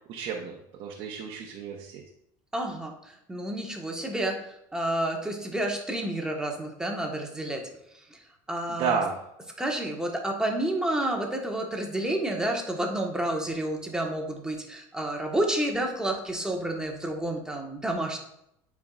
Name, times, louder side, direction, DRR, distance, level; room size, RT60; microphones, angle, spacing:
voice 1, 0.1-0.5 0.8-2.0 8.7-9.1, right 6 dB, 55° right, -1 dB, 1.0 m, -31 dB
voice 2, 2.5-2.9 3.3-4.3 4.7-7.6 8.5-9.0 9.6-18.2, right 1 dB, 5° right, 1 dB, 1.3 m, -29 dB
9.2 x 4.7 x 2.4 m, 0.77 s
supercardioid pair, 105°, 10 cm